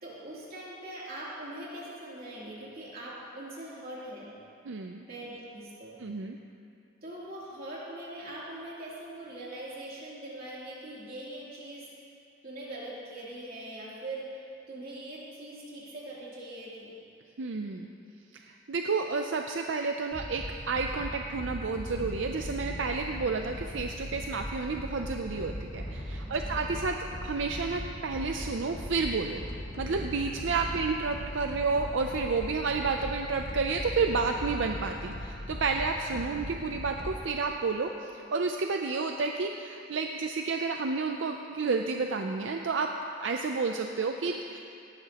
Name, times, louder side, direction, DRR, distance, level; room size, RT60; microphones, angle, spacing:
voice 1, 0.0-4.3 5.1-6.0 7.0-11.9 12.4-17.0 26.2-26.6, right 1 dB, 50° right, -7 dB, 3.1 m, -42 dB
voice 2, 4.7-5.0 6.0-6.4 17.4-17.9 18.5-27.0 27.2-29.4 29.8-42.9 43.2-44.6, right 4 dB, 80° right, 3 dB, 0.5 m, -30 dB
sound 1, 20.1-37.1, equal, 55° left, 2.0 m, -39 dB
17.5 x 13.0 x 3.0 m, 2.5 s
head